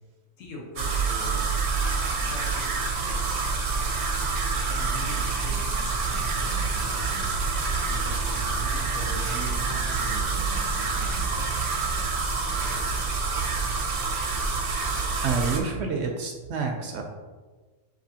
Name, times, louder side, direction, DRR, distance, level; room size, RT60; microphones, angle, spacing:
voice 1, 0.4-1.6 2.2-3.2 4.6-7.1 7.9-11.6, left 2 dB, 85° left, -2 dB, 1.3 m, -42 dB
sound 1, 0.8-15.6, right 4 dB, 80° right, 1.1 m, -27 dB
Piano, 4.5-12.5, equal, 35° left, 0.6 m, -43 dB
voice 2, 15.2-17.0, right 5 dB, 65° right, 3 dB, 0.8 m, -28 dB
7.3 x 2.7 x 2.7 m, 1.4 s
omnidirectional pair, 1.3 m